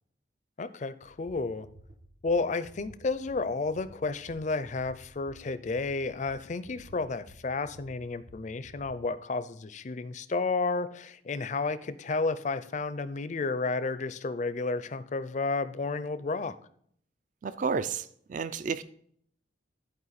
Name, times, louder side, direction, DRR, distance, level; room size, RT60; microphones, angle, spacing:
voice 1, 0.6-1.7 2.2-16.6, left 3 dB, 40° left, 0.4 m, -32 dB
sound 1, 1.0-9.0, right 1 dB, 75° right, 1.2 m, -53 dB
voice 2, 17.4-18.8, right 5 dB, 45° right, 0.3 m, -31 dB
11.5 x 4.7 x 4.0 m
head